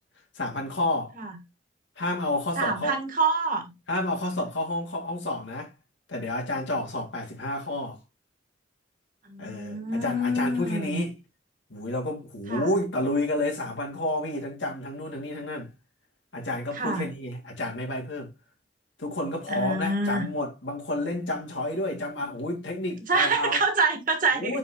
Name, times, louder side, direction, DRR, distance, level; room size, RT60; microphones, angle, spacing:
voice 1, 0.4-1.1 2.0-2.9 3.9-5.7 6.1-8.0 9.4-11.2 11.7-15.7 16.3-18.3 19.0-23.6 24.3-24.6, left 1 dB, 85° left, 2.3 m, -30 dB
voice 2, 2.6-3.6 9.3-11.0 12.5-12.7 16.7-17.1 19.5-20.3 23.1-24.6, right 3 dB, 50° right, 1.6 m, -26 dB
9.1 x 4.1 x 3.0 m
head